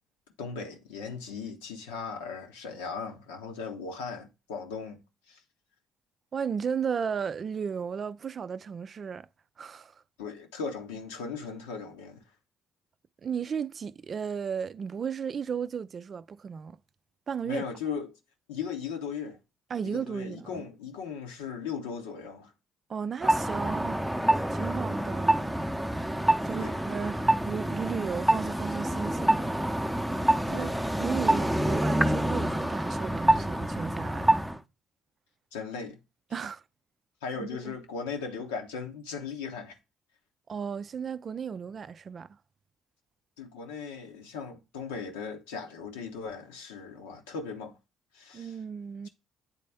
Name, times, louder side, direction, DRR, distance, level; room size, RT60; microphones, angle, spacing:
voice 1, 0.4-5.0 5.3-5.4 10.2-12.2 17.4-18.1 18.5-19.4 19.8-22.5 26.5-26.8 30.5-30.7 35.5-36.0 37.2-39.8 43.4-47.8 48.1-48.5, left 5 dB, 80° left, 1.1 m, -38 dB
voice 2, 6.3-9.3 9.6-10.0 13.2-16.8 17.3-17.6 19.7-20.7 22.9-25.6 26.4-29.6 30.5-30.7 31.0-34.4 36.3-36.6 37.4-37.7 40.5-42.4 48.3-49.1, right 6 dB, 45° right, 0.4 m, -35 dB
Crosswalk Signal, 23.2-34.6, right 1 dB, 5° right, 0.7 m, -27 dB
9.0 x 4.2 x 3.4 m
hypercardioid pair, 50°, 0 cm